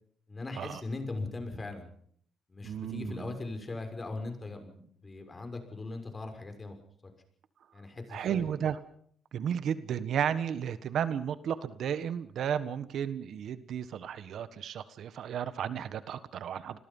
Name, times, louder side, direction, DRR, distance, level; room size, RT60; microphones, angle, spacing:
voice 1, 0.3-1.9 2.5-6.8 7.0-7.1 7.7-8.4, left 3 dB, 25° left, 6 dB, 6.2 m, -39 dB
voice 2, 2.6-3.4 8.1-8.8 9.3-16.8, right 8 dB, 70° right, 13 dB, 1.5 m, -33 dB
29.5 x 21.5 x 5.6 m, 0.63 s
cardioid pair, 90°, 0 cm